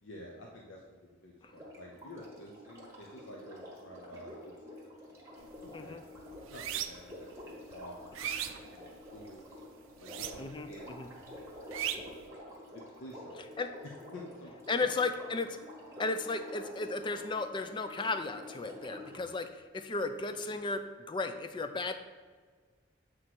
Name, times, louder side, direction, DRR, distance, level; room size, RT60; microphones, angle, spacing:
voice 1, 0.0-5.3 5.6-6.0 6.5-9.5 10.0-10.9 11.1-11.5 12.7-13.3 14.1-14.6 19.1-19.4 20.4-20.6, left 1 dB, 75° left, -1 dB, 0.8 m, -51 dB
Sink (filling or washing), 1.4-19.3 20.4-20.5, left 1 dB, 15° right, 1.4 m, -49 dB
sound 1, 5.4-5.7 6.0-7.2 7.6-9.3 10.0-10.7 11.0-12.2, right 10 dB, 85° right, 0.5 m, -38 dB
voice 2, 10.4-11.1 12.0-12.1 13.6-13.7 14.7-15.6 16.0-21.9, left 3 dB, 25° left, 9 dB, 0.4 m, -35 dB
7.9 x 3.2 x 5.9 m, 1.5 s
head